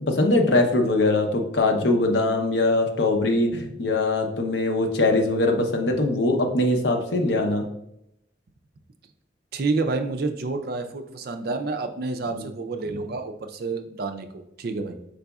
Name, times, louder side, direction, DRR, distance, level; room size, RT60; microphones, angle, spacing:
voice 1, 0.1-7.6 12.3-12.5, left 2 dB, 65° left, 3 dB, 0.7 m, -22 dB
voice 2, 9.5-15.0, right 3 dB, 55° right, 7 dB, 0.4 m, -29 dB
4.7 x 3.9 x 2.3 m, 0.78 s
head